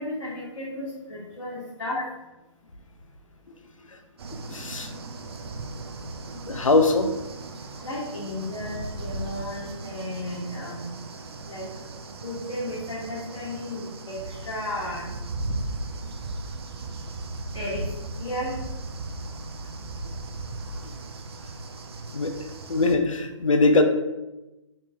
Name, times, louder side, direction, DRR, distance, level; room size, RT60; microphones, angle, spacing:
voice 1, 0.0-2.0 7.8-10.8 11.4-11.7 12.2-15.1 17.5-17.8 18.2-18.5, left 1 dB, 65° left, -8 dB, 1.2 m, -34 dB
sound 1, 4.2-23.0, right 2 dB, 55° right, 0.4 m, -37 dB
voice 2, 4.5-4.9 6.5-7.1 22.1-22.3 22.7-23.8, left 3 dB, 90° left, 7 dB, 0.4 m, -21 dB
4.1 x 2.7 x 2.2 m, 1.0 s
figure-of-eight pair, 140°, 16 cm